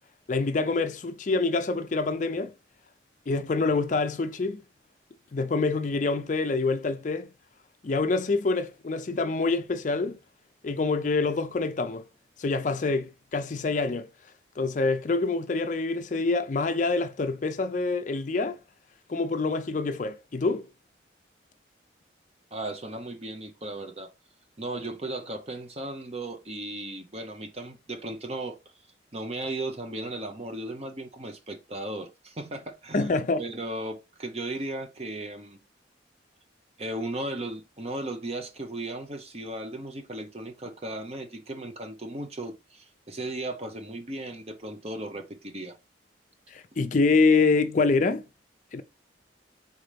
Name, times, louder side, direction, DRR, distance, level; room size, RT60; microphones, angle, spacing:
voice 1, 0.3-2.5 3.3-4.6 5.3-7.3 7.8-10.2 10.6-12.0 12.4-14.1 14.6-18.6 19.1-20.7 32.9-33.4 46.5-48.2 48.7-48.8, left 3 dB, 40° left, 0.4 m, -26 dB
voice 2, 22.5-24.1 24.6-28.6 29.1-33.1 33.4-35.6 36.8-45.8, right 1 dB, 35° right, 0.8 m, -36 dB
3.9 x 3.7 x 3.4 m
head